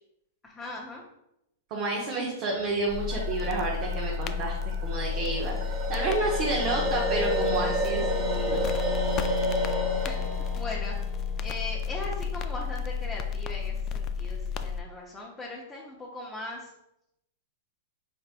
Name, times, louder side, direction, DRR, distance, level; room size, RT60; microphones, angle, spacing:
voice 1, 0.4-1.0 10.1-10.9 11.4-16.7, left 2 dB, 10° left, -5 dB, 0.8 m, -39 dB
voice 2, 1.7-5.5 5.9-8.1 8.3-8.6, right 2 dB, 45° right, -2 dB, 0.8 m, -30 dB
sound 1, 2.5-10.3, right 3 dB, 70° right, 1.4 m, -46 dB
sound 2, 2.9-14.8, left 6 dB, 35° left, 0.3 m, -32 dB
sound 3, 5.1-12.2, equal, 25° right, 1.4 m, -31 dB
4.4 x 3.3 x 2.5 m, 0.82 s
hypercardioid pair, 120°, 0 cm